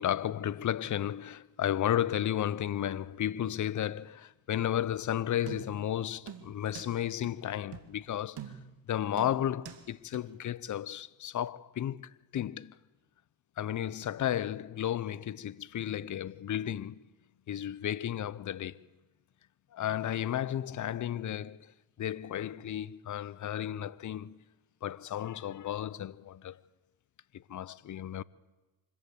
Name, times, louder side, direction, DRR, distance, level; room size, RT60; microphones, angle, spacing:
voice 1, 0.0-8.6 8.9-12.8 13.6-17.1 17.5-18.9 19.7-21.7 22.0-24.4 24.8-26.6 27.3-28.2, left 11 dB, 40° left, 0.8 m, -33 dB
sound 1, 5.5-5.9 6.3-6.9 7.2-7.3 7.7-7.9 8.4-8.8 9.2-9.8 10.1-10.2, right 9 dB, 55° right, 2.3 m, -45 dB
25.0 x 15.0 x 8.5 m
supercardioid pair, 70°, 47 cm